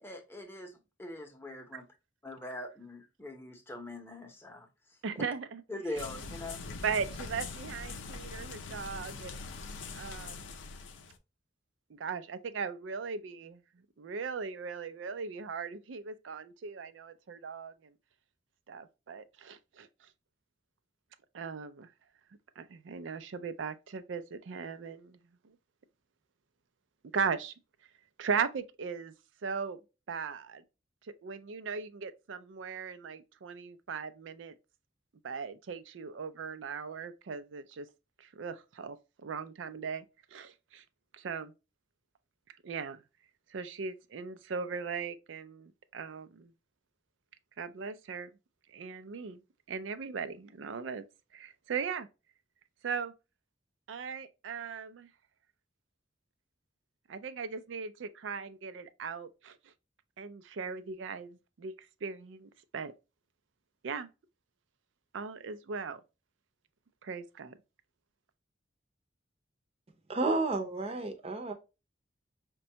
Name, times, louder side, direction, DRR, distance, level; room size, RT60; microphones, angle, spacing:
voice 1, 0.0-0.7 1.0-1.9 2.2-4.7 5.7-6.6, left 1 dB, 10° left, 0.7 m, -42 dB
voice 2, 5.0-5.6 6.8-9.4 9.9-10.4 11.9-13.6 14.0-17.9 18.7-19.9 21.3-21.9 22.6-25.2 25.4-25.5 27.1-27.5 28.2-29.1 29.4-29.8 30.1-30.6 31.0-34.5 35.2-37.9 38.2-39.0 39.2-40.1 40.3-40.8 41.1-41.5 42.6-43.0 43.5-46.5 47.6-48.3 48.7-49.4 49.7-51.1 51.3-52.1 52.8-53.1 53.9-55.1 57.1-59.6 60.2-62.9 63.8-64.1 65.1-66.0 67.0-67.6, right 5 dB, 90° right, 0.4 m, -38 dB
sound 1, 5.9-11.2, left 4 dB, 85° left, 0.5 m, -43 dB
voice 3, 70.1-71.5, right 2 dB, 35° right, 0.6 m, -31 dB
5.1 x 2.2 x 2.7 m
head